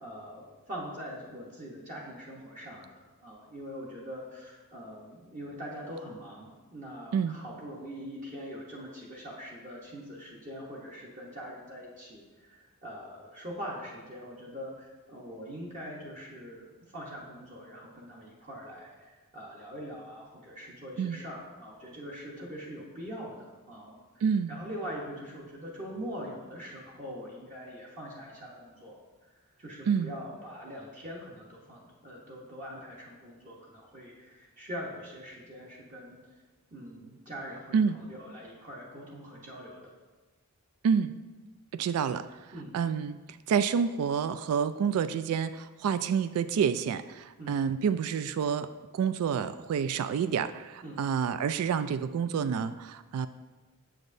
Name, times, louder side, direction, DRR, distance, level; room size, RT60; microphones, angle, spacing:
voice 1, 0.0-2.9 3.2-24.0 24.5-29.0 29.6-36.2 36.7-39.9 42.5-42.7 47.4-47.5 50.8-51.0, equal, 35° right, -5 dB, 1.0 m, -43 dB
voice 2, 24.2-24.5 29.9-30.1 37.7-38.0 40.8-41.1 41.7-42.3 42.7-43.2 43.5-48.7 48.9-53.3, right 7 dB, 75° right, 15 dB, 0.3 m, -28 dB
7.8 x 7.3 x 2.6 m, 1.2 s
head